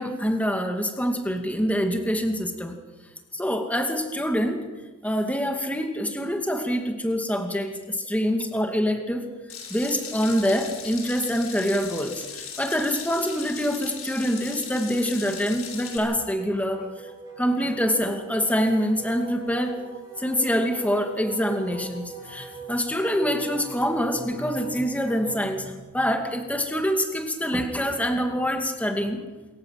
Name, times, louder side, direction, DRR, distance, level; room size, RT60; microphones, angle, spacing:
voice 1, 0.0-2.8 3.3-4.7 5.0-9.2 9.7-17.1 17.4-19.7 20.2-29.2, equal, 5° left, 4 dB, 2.4 m, -25 dB
Water tap faucet / Sink (filling or washing), 9.5-16.0, left 6 dB, 80° left, 6.9 m, -38 dB
Wind instrument woodwind instrument, 14.5-25.4, right 4 dB, 15° right, 7.4 m, -42 dB
27.0 x 15.5 x 7.7 m, 1.2 s
head